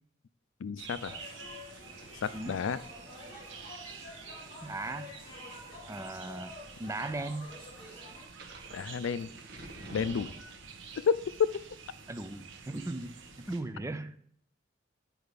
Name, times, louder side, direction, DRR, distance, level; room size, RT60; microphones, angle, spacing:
voice 1, 0.6-1.2 2.2-2.8 8.7-9.3 9.9-10.3 11.0-11.5, left 6 dB, 80° left, 16 dB, 0.4 m, -30 dB
sound 1, 0.8-13.6, right 5 dB, 75° right, 1.0 m, -49 dB
sound 2, 1.0-8.2, left 2 dB, 30° left, 3.1 m, -49 dB
voice 2, 4.6-5.1 5.9-6.5 6.8-7.5 12.1-14.2, right 2 dB, 15° right, 11 dB, 0.4 m, -38 dB
sound 3, 8.1-10.9, right 1 dB, 55° right, 1.5 m, -47 dB
9.8 x 4.6 x 5.1 m, 0.64 s
head